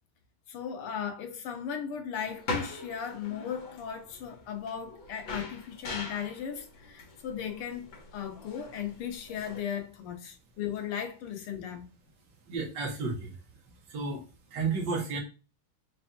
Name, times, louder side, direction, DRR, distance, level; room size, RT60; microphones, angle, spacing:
voice 1, 0.5-7.9 8.1-11.9, left 8 dB, 90° left, 1.8 m, -37 dB
sound 1, 2.2-9.6, left 3 dB, 65° left, 2.2 m, -42 dB
voice 2, 12.5-13.4 13.9-14.2 14.5-15.2, right 4 dB, 60° right, 1.9 m, -32 dB
5.3 x 3.3 x 2.8 m
omnidirectional pair, 2.4 m